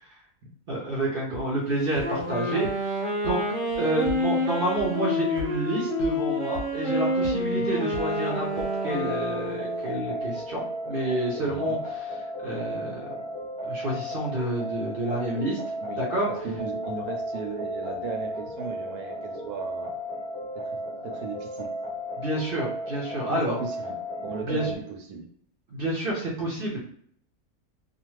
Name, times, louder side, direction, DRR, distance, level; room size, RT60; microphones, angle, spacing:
voice 1, 0.7-2.7 3.2-3.4 3.8-12.1 12.4-13.1 13.6-15.6 16.0-16.3 22.2-23.6 24.4-24.7 25.7-26.8, right 2 dB, 55° right, -3 dB, 0.6 m, -29 dB
sound 1, 1.3-1.4 2.0-2.1 2.6-2.7 3.2-3.3 3.7-4.2 4.8-4.9 5.4-5.5 6.0-6.1 6.6-6.7 7.2-7.3 7.9-8.0 8.6-8.7, left 3 dB, 60° left, 0.8 m, -35 dB
Wind instrument woodwind instrument, 2.0-9.9, left 1 dB, 25° left, 0.8 m, -28 dB
sound 2, 7.9-24.8, equal, 10° left, 0.4 m, -34 dB
voice 2, 15.8-19.9 20.5-21.7 23.3-25.3, right 5 dB, 80° right, 4 dB, 1.1 m, -37 dB
2.5 x 2.3 x 3.0 m, 0.63 s
omnidirectional pair, 1.6 m